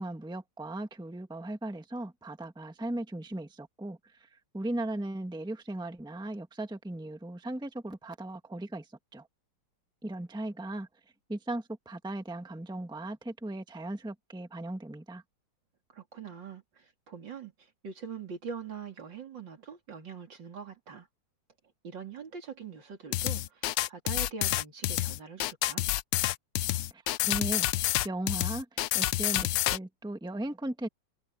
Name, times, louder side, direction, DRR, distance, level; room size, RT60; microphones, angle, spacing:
voice 1, 0.0-4.3 4.5-8.9 9.1-9.3 10.0-10.9 11.3-15.2 26.9-28.7 28.9-30.9, right 1 dB, 5° right, 1.3 m, -37 dB
voice 2, 15.9-17.5 17.8-21.1 21.8-25.9, right 6 dB, 75° right, 3.6 m, -43 dB
sound 1, 23.1-29.8, left 15 dB, 75° left, 1.2 m, -28 dB
omnidirectional pair, 2.0 m